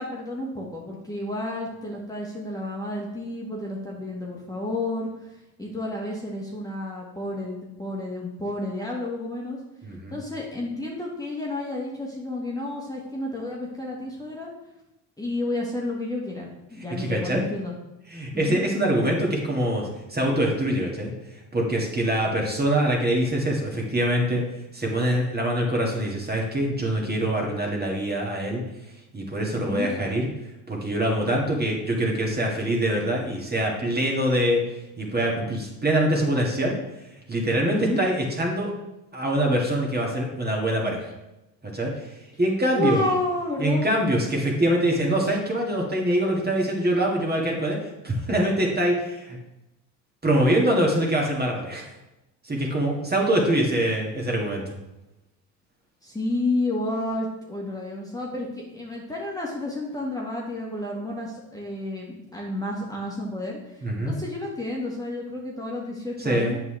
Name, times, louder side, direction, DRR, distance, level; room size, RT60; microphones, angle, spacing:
voice 1, 0.0-5.3 5.6-9.6 10.1-14.5 15.2-17.8 18.3-18.6 29.6-29.9 37.7-38.0 42.7-43.8 56.0-66.6, left 1 dB, 10° left, -3 dB, 1.7 m, -31 dB
voice 2, 9.8-10.2 16.9-17.5 18.1-21.1 21.5-24.5 24.7-28.6 29.1-30.3 30.7-34.6 35.0-36.8 37.3-38.7 39.1-41.1 41.7-42.1 42.4-43.0 43.6-49.4 50.2-51.9 52.4-54.6 63.8-64.1 66.2-66.6, right 1 dB, 20° right, -1 dB, 2.0 m, -24 dB
7.9 x 5.7 x 3.3 m, 0.94 s
supercardioid pair, 75°, 43 cm